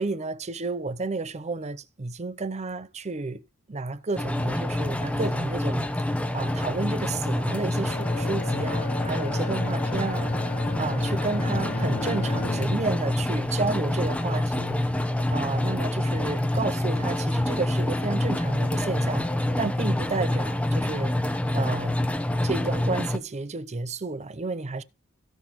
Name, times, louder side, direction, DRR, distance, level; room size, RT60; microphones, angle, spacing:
voice 1, 0.0-3.4 3.7-10.4 10.8-14.8 15.3-21.1 21.5-22.0 22.4-24.8, right 3 dB, 35° right, 0.6 m, -31 dB
sound 1, 4.2-23.2, left 1 dB, 5° left, 0.8 m, -27 dB
Bowed string instrument, 7.7-13.2, left 3 dB, 40° left, 0.7 m, -35 dB
17.0 x 6.1 x 3.1 m
head